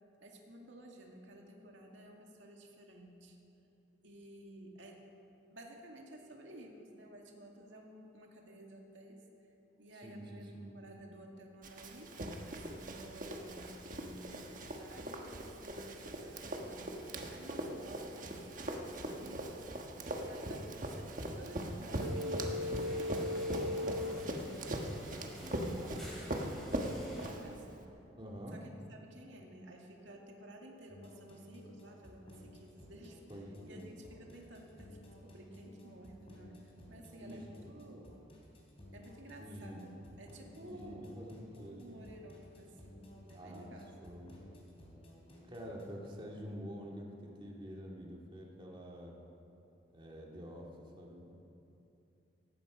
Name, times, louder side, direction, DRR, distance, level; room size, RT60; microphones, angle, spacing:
voice 1, 0.2-3.4 4.0-5.1 5.5-9.2 9.8-12.1 12.5-19.7 20.2-24.9 25.5-27.9 28.5-33.2 33.5-38.1 38.9-41.1 41.5-44.2, right 1 dB, 90° right, 0 dB, 2.1 m, -53 dB
voice 2, 9.9-10.8 28.2-28.6 33.3-33.9 37.2-37.4 39.4-39.8 40.6-42.0 43.3-43.7 44.0-44.3 45.5-49.2 49.9-51.3, equal, 25° right, -2 dB, 2.1 m, -47 dB
Run, 11.6-27.8, right 1 dB, 45° right, 1.4 m, -41 dB
sound 1, 21.9-27.3, left 1 dB, ahead, 4.3 m, -40 dB
sound 2, 30.9-46.1, left 1 dB, 30° left, 3.3 m, -56 dB
18.0 x 15.0 x 5.0 m, 2.8 s
head